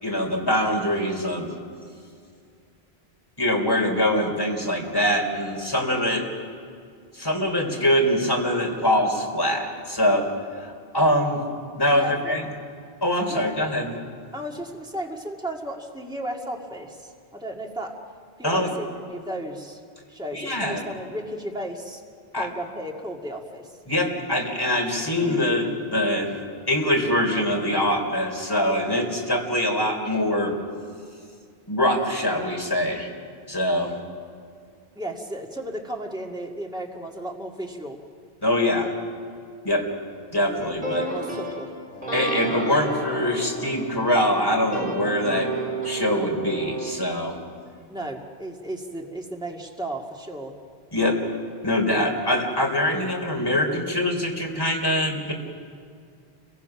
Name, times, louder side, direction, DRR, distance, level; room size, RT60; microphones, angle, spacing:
voice 1, 0.0-1.5 3.4-6.2 7.1-10.3 10.6-11.4 11.8-12.4 13.0-14.0 18.4-18.7 20.3-20.8 22.3-22.5 23.9-26.3 26.7-30.5 31.7-33.1 33.5-33.9 38.4-38.9 39.6-39.9 40.3-41.1 42.1-45.5 45.8-47.4 50.9-51.2 51.6-55.3, left 1 dB, 20° left, 0 dB, 3.8 m, -23 dB
voice 2, 11.9-12.3 13.3-13.5 14.3-18.0 18.4-19.8 20.1-22.0 22.4-23.7 35.0-38.0 40.4-41.7 47.9-50.5, right 1 dB, 5° right, 0 dB, 2.1 m, -34 dB
sound 1, 40.6-46.9, right 3 dB, 55° right, 4.4 m, -32 dB
30.0 x 23.5 x 6.0 m, 2.2 s
omnidirectional pair, 1.0 m